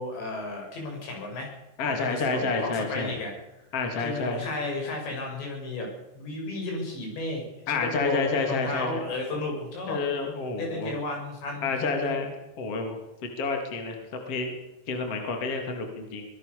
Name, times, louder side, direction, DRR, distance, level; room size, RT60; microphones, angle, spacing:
voice 1, 0.0-1.5 1.9-3.3 4.0-5.9 6.2-10.0 10.6-12.2, left 2 dB, 65° left, 1 dB, 9.2 m, -33 dB
voice 2, 1.8-3.1 3.7-4.5 7.7-9.0 9.9-11.0 11.6-12.3 12.6-13.0 13.4-14.0 14.3-14.6 14.9-16.3, left 4 dB, 35° left, 4 dB, 3.5 m, -29 dB
24.0 x 19.0 x 6.9 m, 0.92 s
omnidirectional pair, 5.4 m